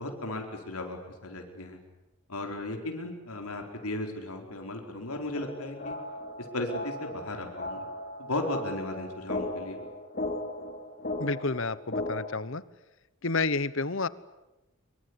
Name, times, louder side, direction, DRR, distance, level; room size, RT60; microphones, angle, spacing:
voice 1, 0.0-1.8 2.3-6.0 6.4-7.8 8.2-9.8, left 1 dB, 85° left, 3 dB, 4.7 m, -35 dB
sound 1, 5.3-12.3, left 2 dB, 40° left, 3.5 m, -37 dB
voice 2, 11.2-12.6 13.2-14.1, left 3 dB, 65° left, 17 dB, 1.1 m, -30 dB
25.5 x 24.0 x 9.8 m, 1.0 s
head